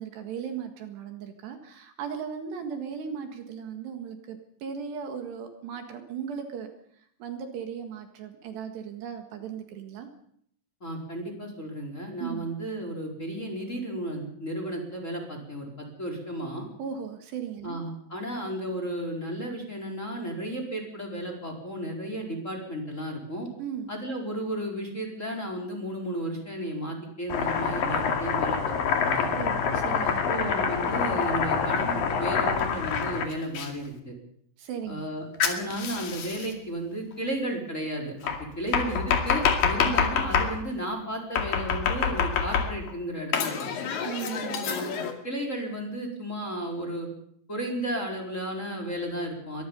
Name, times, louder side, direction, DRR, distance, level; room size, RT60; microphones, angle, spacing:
voice 1, 0.0-6.7 7.2-10.1 12.2-12.5 16.8-17.8 23.6-23.9 29.4-30.2 34.6-35.1 44.1-44.7, right 7 dB, 70° right, 5 dB, 3.7 m, -37 dB
voice 2, 10.8-16.7 17.6-23.5 23.9-29.3 30.0-34.1 34.9-38.1 38.6-43.9 44.6-45.0 45.2-47.1 47.5-49.7, right 1 dB, 15° left, 3 dB, 4.4 m, -33 dB
Domestic sounds home sounds, 27.3-33.7 35.4-36.5 38.3-40.5 41.4-42.9 43.3-45.1, left 6 dB, 55° left, 3.7 m, -26 dB
24.5 x 21.0 x 5.5 m, 0.67 s
omnidirectional pair, 5.3 m